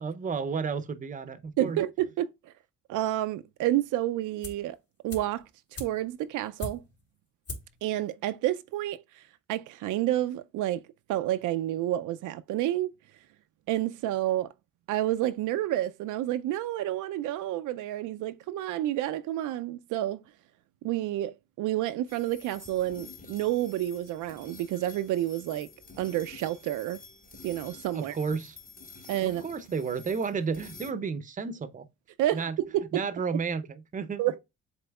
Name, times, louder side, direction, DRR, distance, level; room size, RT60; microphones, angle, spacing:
voice 1, 0.0-1.8 27.9-28.6 29.2-31.9 32.3-32.6 32.9-34.2, right 5 dB, 25° right, 0.6 m, -32 dB
voice 2, 1.6-2.3 2.9-4.8 5.0-5.4 5.7-6.8 7.8-9.0 9.5-10.8 11.1-12.9 13.7-14.5 14.9-20.2 20.8-25.7 26.0-27.0 27.4-28.1 29.1-29.4 32.2-33.0 34.2-34.4, right 13 dB, 80° right, 0.5 m, -29 dB
sound 1, 4.4-4.7 5.1-7.1 7.4-7.8 8.1-8.2, left 2 dB, 55° left, 2.8 m, -41 dB
sound 2, 22.1-30.9, left 4 dB, 30° left, 1.1 m, -49 dB
7.8 x 3.0 x 2.3 m
cardioid pair, 90°, 30 cm